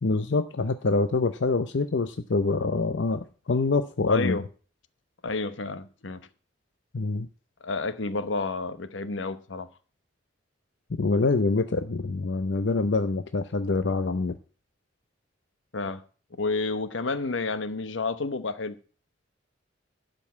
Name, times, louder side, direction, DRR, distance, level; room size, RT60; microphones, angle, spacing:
voice 1, 0.0-4.4 6.9-7.3 11.0-14.3, left 3 dB, 70° left, 0.6 m, -25 dB
voice 2, 4.1-4.4 5.2-6.2 7.6-9.7 15.7-16.0 16.4-18.8, left 3 dB, 85° left, 1.0 m, -30 dB
12.0 x 5.3 x 8.3 m
head